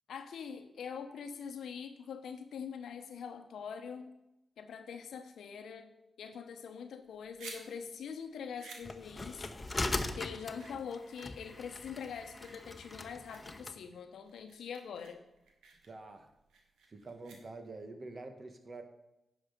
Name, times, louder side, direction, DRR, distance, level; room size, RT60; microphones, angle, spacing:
voice 1, 0.1-4.1 4.6-9.5 10.1-15.2, left 6 dB, 80° left, 8 dB, 0.9 m, -44 dB
sound 1, 7.0-17.9, right 4 dB, 90° right, 1.4 m, -55 dB
sound 2, 8.8-13.8, left 2 dB, 30° left, 0.9 m, -40 dB
voice 2, 15.8-16.3 16.9-18.8, right 3 dB, 50° right, 6 dB, 1.4 m, -47 dB
10.0 x 6.1 x 5.2 m, 0.91 s
supercardioid pair, 45°, 0 cm